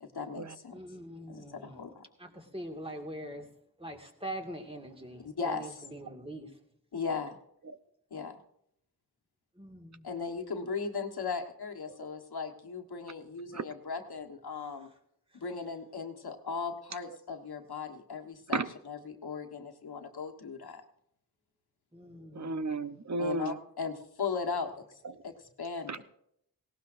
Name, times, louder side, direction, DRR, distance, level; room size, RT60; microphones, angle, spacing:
voice 1, 0.0-0.8 1.3-2.0 5.2-5.8 6.9-7.4 8.1-8.4 10.0-14.9 15.3-18.6 18.8-20.8 23.2-24.7 25.2-26.0, left 5 dB, 85° left, 1.4 m, -37 dB
voice 2, 0.7-1.9 2.2-3.5 3.8-6.6 9.6-10.1 21.9-22.7, right 1 dB, 15° right, 2.0 m, -43 dB
voice 3, 22.3-23.6 25.9-26.0, right 3 dB, 50° right, 0.8 m, -33 dB
18.0 x 17.5 x 2.6 m
wide cardioid pair, 60°, 37 cm